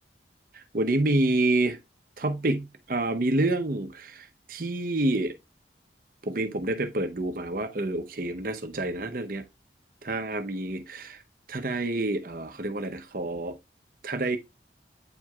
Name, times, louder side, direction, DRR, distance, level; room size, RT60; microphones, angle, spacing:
voice 1, 0.5-1.8 2.2-5.4 6.2-9.4 10.0-11.2 11.5-13.6 14.0-14.4, right 2 dB, 50° right, 0.8 m, -28 dB
8.8 x 4.5 x 2.3 m
head